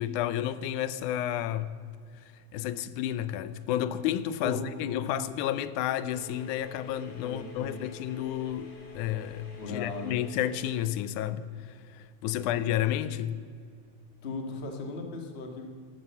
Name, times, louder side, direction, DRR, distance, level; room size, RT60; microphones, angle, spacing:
voice 1, 0.0-1.7 2.5-13.4, left 11 dB, 85° left, 2.1 m, -31 dB
voice 2, 4.4-5.2 7.2-7.8 9.5-10.2 12.4-12.5 14.2-15.7, left 3 dB, 30° left, 1.2 m, -37 dB
sound 1, 6.1-11.1, left 2 dB, 50° left, 2.9 m, -49 dB
14.0 x 12.5 x 6.9 m
omnidirectional pair, 3.5 m